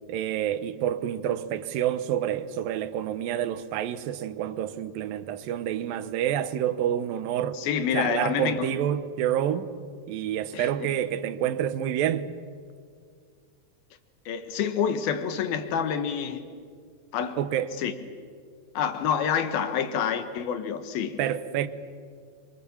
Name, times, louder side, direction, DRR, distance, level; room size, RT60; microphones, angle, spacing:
voice 1, 0.1-7.6 7.9-9.7 10.1-12.3 17.4-17.7 21.2-21.7, right 10 dB, 80° right, 2.7 m, -28 dB
voice 2, 7.5-8.8 10.5-10.9 14.3-16.5 17.1-17.4 17.8-17.9 18.7-21.2, left 8 dB, 90° left, 3.2 m, -28 dB
26.0 x 24.5 x 7.2 m
omnidirectional pair, 4.1 m